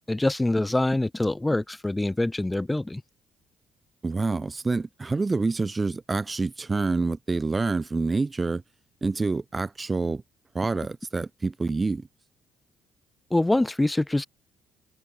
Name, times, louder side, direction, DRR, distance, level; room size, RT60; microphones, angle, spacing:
voice 1, 0.0-3.0 13.3-14.3, left 2 dB, 15° left, 1.4 m, -25 dB
voice 2, 4.0-8.6 9.0-10.2 10.5-12.1, right 3 dB, 30° right, 0.5 m, -27 dB
hypercardioid pair, 50°, 0 cm